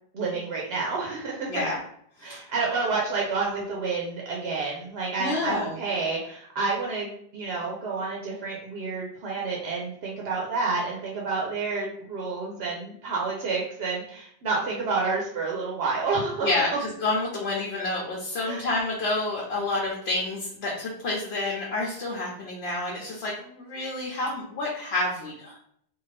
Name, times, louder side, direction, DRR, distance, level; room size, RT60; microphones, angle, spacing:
voice 1, 0.1-1.5 2.2-16.5 18.5-18.6, right 4 dB, 80° right, -2 dB, 0.9 m, -29 dB
voice 2, 5.2-5.8 16.4-25.6, left 2 dB, 80° left, -3 dB, 0.9 m, -29 dB
2.6 x 2.5 x 3.2 m, 0.67 s
omnidirectional pair, 1.0 m